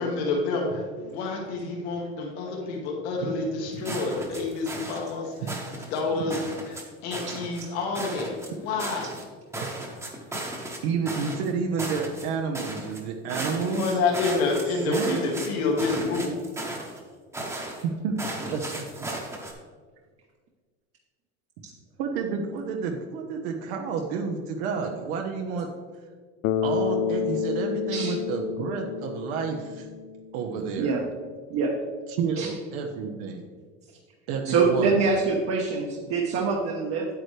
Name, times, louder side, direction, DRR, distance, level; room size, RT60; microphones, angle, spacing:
voice 1, 0.0-9.1 13.5-16.3, left 3 dB, 90° left, -1 dB, 2.0 m, -28 dB
sound 1, 3.9-5.1 5.5-6.0 6.3-6.8 7.1-7.6 7.9-9.2 9.5-10.8 11.1-11.5 11.8-12.3 12.5-13.0 13.3-15.5 15.8-17.0 17.3-17.8 18.2-19.5, right 1 dB, 10° right, 1.1 m, -35 dB
voice 2, 10.8-13.9 14.8-15.2 17.8-18.1 18.5-18.8 22.0-25.7 26.6-29.9 30.3-30.9 32.1-33.5 34.3-35.0, right 5 dB, 75° right, 2 dB, 1.1 m, -30 dB
Bass guitar, 26.4-30.7, left 7 dB, 45° left, 0.4 m, -29 dB
voice 3, 34.4-37.1, right 4 dB, 45° right, -1 dB, 1.1 m, -24 dB
9.2 x 8.9 x 3.3 m, 1.5 s
cardioid pair, 160°, 32 cm